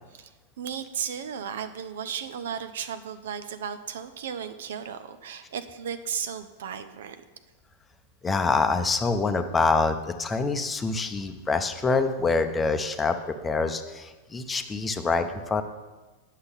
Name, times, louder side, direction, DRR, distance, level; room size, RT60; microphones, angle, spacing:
voice 1, 0.6-7.2, right 8 dB, 60° right, 11 dB, 0.6 m, -35 dB
voice 2, 8.2-15.6, left 4 dB, 15° left, 7 dB, 0.7 m, -26 dB
9.6 x 6.6 x 5.6 m, 1.2 s
figure-of-eight pair, 90°, 0 cm